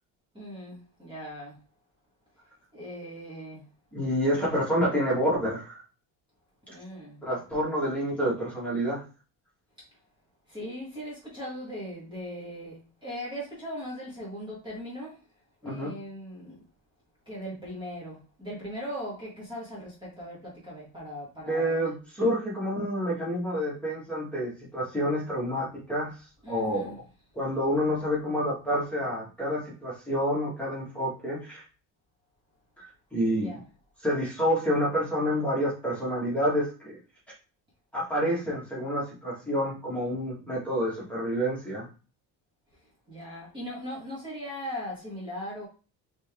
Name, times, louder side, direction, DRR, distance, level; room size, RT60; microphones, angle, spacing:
voice 1, 0.3-1.6 2.7-3.6 6.7-7.2 10.5-15.1 15.6-16.6 17.3-21.9 26.4-27.0 33.3-33.6 43.1-45.7, equal, 10° right, 1.7 m, -39 dB
voice 2, 3.9-5.8 7.2-9.0 15.6-15.9 21.5-26.1 26.5-26.9 27.3-31.6 32.8-33.6 34.0-37.0 37.9-41.8, equal, 5° left, 1.7 m, -28 dB
4.0 x 3.4 x 3.7 m
cardioid pair, 175°, 38 cm